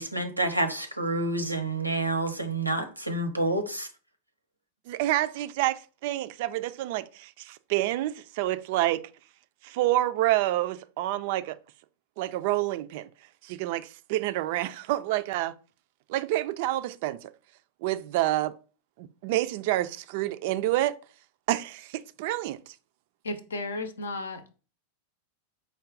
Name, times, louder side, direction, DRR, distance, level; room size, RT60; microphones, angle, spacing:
voice 1, 0.0-3.9, right 2 dB, 90° right, 0.7 m, -28 dB
voice 2, 4.9-9.0 9.6-11.6 12.2-13.1 13.4-15.5 16.1-17.3 17.8-18.5 19.0-20.9 21.5-22.6, right 15 dB, 50° right, 0.3 m, -28 dB
voice 3, 23.2-24.6, left 2 dB, 70° left, 0.6 m, -34 dB
4.6 x 2.2 x 3.7 m
figure-of-eight pair, 90°, 0 cm